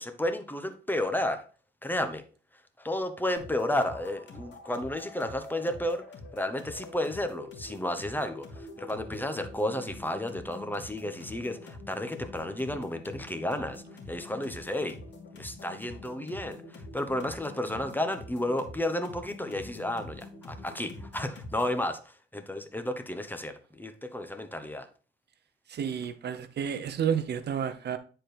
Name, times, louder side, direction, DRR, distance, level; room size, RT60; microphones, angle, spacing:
voice 1, 0.0-1.4 1.8-2.2 2.8-6.0 6.3-15.0 15.4-22.0 22.3-24.9, left 1 dB, 10° left, 0.9 m, -32 dB
sound 1, 3.4-21.8, left 2 dB, 60° left, 2.3 m, -46 dB
voice 2, 25.7-28.0, right 8 dB, 55° right, 0.7 m, -30 dB
9.9 x 4.4 x 3.3 m
cardioid pair, 90°, 20 cm